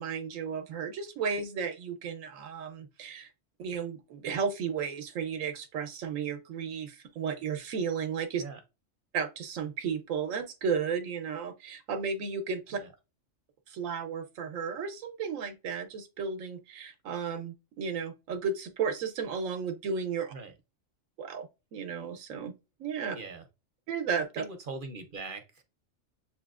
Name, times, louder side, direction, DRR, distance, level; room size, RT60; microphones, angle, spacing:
voice 1, 0.0-3.3 3.6-8.4 9.1-12.8 13.7-20.3 21.2-22.5 22.8-23.2 23.9-24.4, right 6 dB, 85° right, 1.1 m, -34 dB
voice 2, 23.1-23.4 24.4-25.6, right 3 dB, 50° right, 0.8 m, -41 dB
7.7 x 2.8 x 2.4 m
omnidirectional pair, 1.3 m